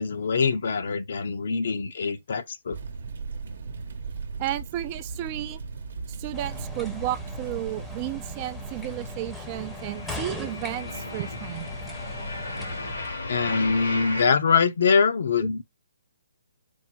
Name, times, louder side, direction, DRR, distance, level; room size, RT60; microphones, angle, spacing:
voice 1, 0.0-2.8 13.3-15.6, left 5 dB, 60° left, 0.8 m, -23 dB
sound 1, 2.7-9.1, right 4 dB, 65° right, 0.8 m, -37 dB
voice 2, 4.4-5.6 6.1-11.7 15.4-15.5, right 14 dB, 25° right, 0.4 m, -33 dB
sound 2, 5.2-7.5 7.8-14.2, left 2 dB, 85° left, 1.9 m, -36 dB
sound 3, 6.3-13.4, left 2 dB, 5° left, 0.7 m, -40 dB
4.5 x 2.1 x 4.4 m
hypercardioid pair, 160°, 0 cm